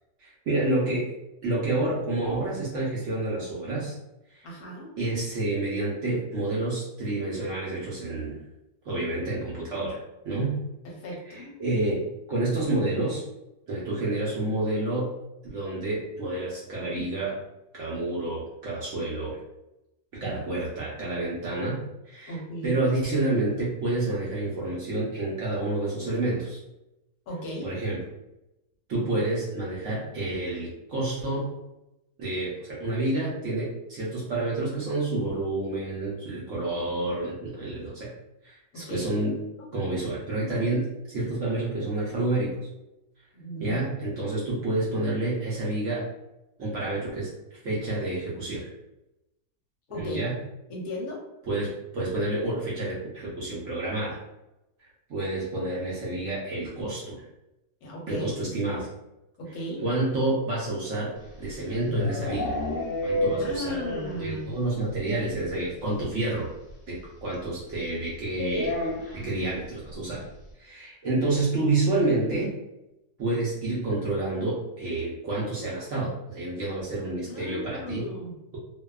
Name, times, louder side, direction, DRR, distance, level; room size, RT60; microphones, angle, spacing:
voice 1, 0.2-1.1 1.4-4.0 4.3-4.4 5.0-8.4 8.9-10.6 11.3-13.2 13.7-15.1 15.5-17.4 17.7-19.4 20.1-26.6 27.6-28.0 28.9-31.5 32.2-38.1 38.4-39.3 39.7-42.6 43.6-46.1 46.6-48.7 50.0-50.4 51.5-54.2 55.1-57.2 58.1-58.9 59.8-62.6 63.0-63.8 64.2-66.5 66.9-68.7 69.1-70.2 70.6-72.5 73.2-78.1 78.5-78.6, right 2 dB, 65° right, -5 dB, 0.8 m, -29 dB
voice 2, 4.4-4.9 10.8-11.6 22.3-22.9 27.3-27.7 38.7-39.1 39.6-39.7 43.3-43.8 49.9-50.2 50.7-51.2 57.8-58.3 59.4-59.8 63.4-64.5 68.4-68.8 77.3-78.4, left 1 dB, 70° left, -1 dB, 1.1 m, -36 dB
sound 1, 61.2-64.3 64.6-64.7 65.0-65.1 65.3-65.5 66.7-66.8 68.5-69.4, left 2 dB, 50° left, 0.6 m, -30 dB
2.6 x 2.2 x 2.2 m, 0.92 s
omnidirectional pair, 1.7 m